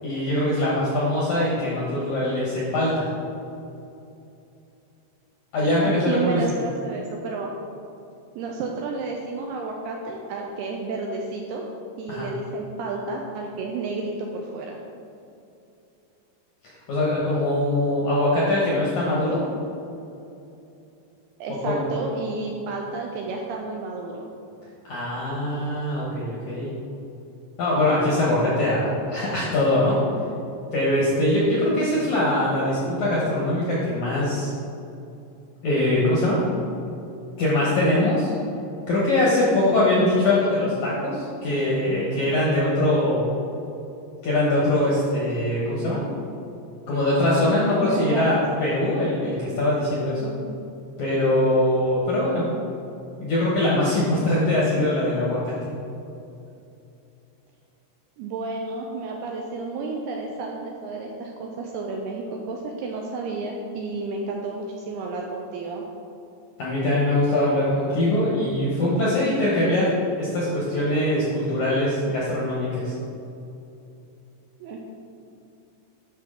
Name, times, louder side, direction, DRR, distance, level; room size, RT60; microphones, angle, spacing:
voice 1, 0.0-3.1 5.5-6.6 12.1-12.3 16.9-19.4 21.6-21.8 24.8-26.7 27.6-30.0 30.7-34.5 35.6-36.4 37.4-38.3 38.9-43.4 44.2-46.0 46.9-50.3 51.0-52.4 53.2-55.5 66.6-72.9, left 1 dB, 70° left, -6 dB, 1.8 m, -22 dB
voice 2, 5.8-7.5 8.4-11.6 12.0-14.8 21.4-24.3 31.8-31.9 47.7-48.4 54.7-54.9 58.2-65.8 74.6-74.8, right 3 dB, 85° right, 0 dB, 2.3 m, -31 dB
10.5 x 6.3 x 3.7 m, 2.7 s
omnidirectional pair, 5.1 m